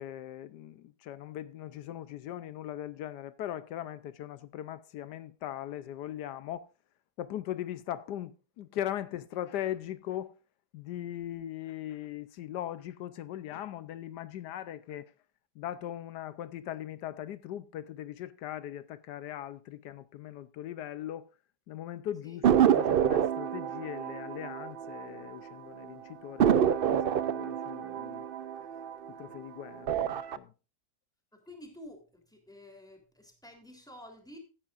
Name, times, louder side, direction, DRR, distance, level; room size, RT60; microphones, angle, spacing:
voice 1, 0.0-6.7 7.2-10.3 10.7-15.1 15.6-21.3 21.7-28.2 29.2-30.5, left 12 dB, 85° left, 1.3 m, -39 dB
sound 1, 22.4-25.5 25.8-25.9 26.4-29.3 29.8-30.4, right 9 dB, 90° right, 0.4 m, -27 dB
voice 2, 31.3-34.4, left 1 dB, ahead, 3.3 m, -50 dB
15.5 x 10.0 x 2.5 m
omnidirectional pair, 1.8 m